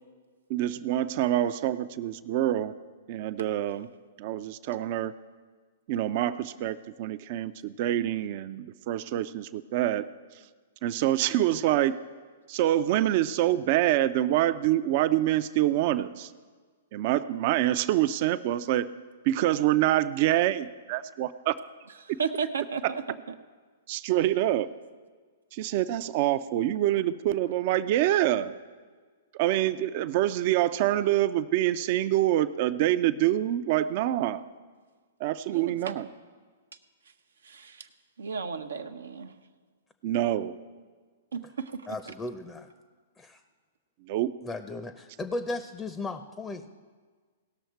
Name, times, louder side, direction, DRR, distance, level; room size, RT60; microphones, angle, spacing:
voice 1, 0.5-2.7 3.1-3.9 4.2-5.1 5.9-10.1 10.8-11.9 12.5-16.3 16.9-18.9 19.2-21.5 22.8-22.9 23.9-24.7 25.5-28.5 29.3-34.4 35.2-36.1 40.0-40.6 44.1-44.3, right 13 dB, 45° right, 13 dB, 0.5 m, -26 dB
voice 2, 22.2-23.0 35.5-35.7 37.5-37.7 38.2-39.3 41.3-41.8, right 6 dB, 80° right, 8 dB, 0.8 m, -33 dB
voice 3, 41.9-42.7 43.2-43.4 44.4-46.7, left 2 dB, 15° left, 10 dB, 0.6 m, -36 dB
18.0 x 6.3 x 4.6 m, 1.5 s
hypercardioid pair, 115°, 0 cm